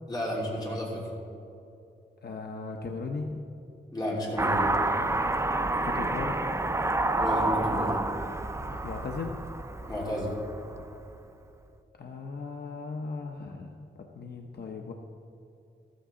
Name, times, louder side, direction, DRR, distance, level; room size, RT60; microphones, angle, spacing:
voice 1, 0.1-1.0 3.9-4.7 7.1-7.9 9.8-10.3, left 1 dB, 20° left, -4 dB, 3.1 m, -32 dB
voice 2, 2.2-3.4 5.8-6.4 8.7-9.4 12.0-14.9, left 4 dB, 60° left, 2 dB, 0.8 m, -37 dB
Car passing by / Accelerating revving vroom, 4.4-11.0, right 2 dB, 15° right, 0.5 m, -29 dB
14.0 x 13.5 x 3.8 m, 2.8 s
wide cardioid pair, 150°, 19 cm